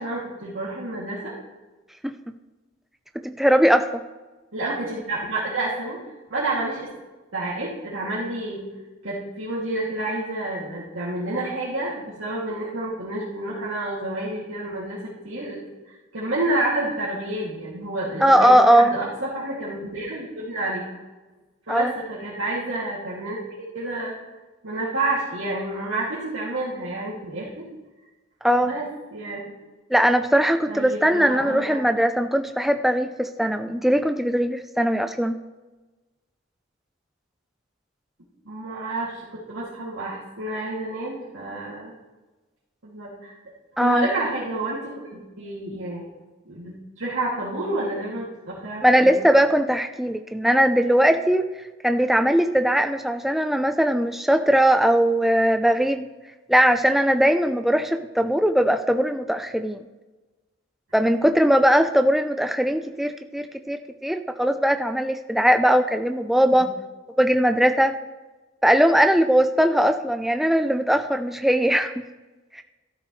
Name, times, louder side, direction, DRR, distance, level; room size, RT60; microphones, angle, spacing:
voice 1, 0.0-1.3 4.5-6.0 6.3-6.9 7.3-8.6 9.0-15.6 15.9-20.9 21.7-24.2 24.6-27.6 28.6-28.9 29.1-29.5 30.7-31.8 38.5-41.9 42.8-43.3 43.8-46.0 46.5-49.2 66.5-66.6, right 2 dB, 75° right, -8 dB, 2.5 m, -29 dB
voice 2, 3.2-4.0 18.2-18.9 21.7-21.9 28.4-28.7 29.9-35.4 43.8-44.1 48.8-51.5 51.8-56.1 56.5-59.8 60.9-66.7 67.2-67.9 68.6-72.0 72.5-72.6, equal, ahead, 7 dB, 0.5 m, -20 dB
13.5 x 11.5 x 3.2 m, 1.2 s
head